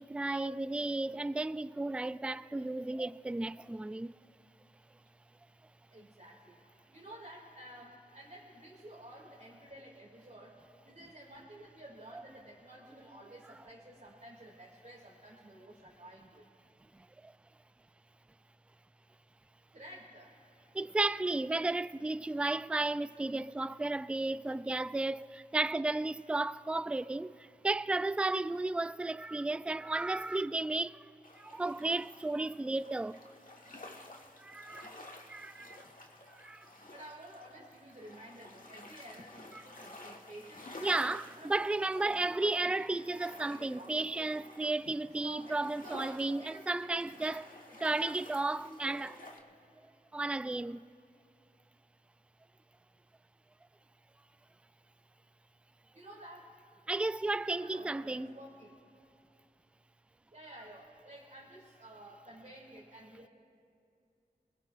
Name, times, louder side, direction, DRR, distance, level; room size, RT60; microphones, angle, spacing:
voice 1, 0.0-4.1 16.9-17.3 20.7-33.2 34.4-34.9 35.3-35.9 36.3-36.7 40.8-47.4 47.8-49.1 50.1-50.8 56.9-58.4, right 2 dB, 5° right, 0.3 m, -34 dB
voice 2, 5.9-6.6 6.9-16.5 19.7-20.3 36.9-44.5 45.2-47.9 48.3-49.4 55.9-56.5 57.4-58.8 60.3-63.3, right 1 dB, 50° right, 2.5 m, -52 dB
sound 1, 31.2-49.4, left 2 dB, 60° left, 1.5 m, -52 dB
27.5 x 20.5 x 2.5 m
wide cardioid pair, 40°, 16 cm